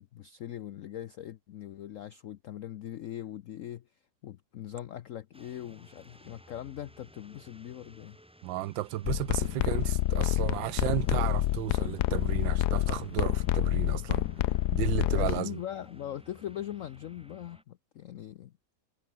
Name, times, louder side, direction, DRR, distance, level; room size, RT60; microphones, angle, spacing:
voice 1, 0.0-8.2 14.9-18.5, left 11 dB, 85° left, 0.7 m, -41 dB
sound 1, 5.3-17.6, equal, 5° right, 2.4 m, -56 dB
voice 2, 8.4-14.3 14.7-15.6, right 15 dB, 80° right, 1.4 m, -33 dB
sound 2, 9.0-15.4, left 15 dB, 70° left, 1.0 m, -28 dB
omnidirectional pair, 2.1 m